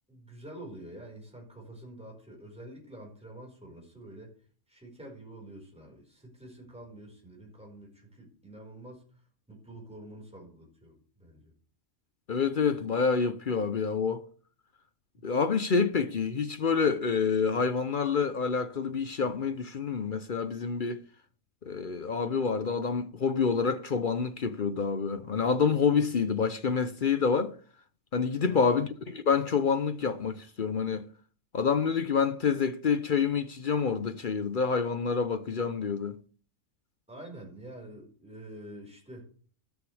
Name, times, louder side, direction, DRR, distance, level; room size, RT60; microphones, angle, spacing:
voice 1, 0.1-4.3 4.7-9.2 9.5-11.5 15.2-15.3 28.5-28.8 37.1-39.3, right 1 dB, 5° right, 4.7 m, -47 dB
voice 2, 12.3-14.3 15.2-21.0 21.7-27.6 28.1-31.1 31.5-36.2, left 5 dB, 50° left, 0.8 m, -27 dB
13.0 x 13.0 x 3.3 m
omnidirectional pair, 1.3 m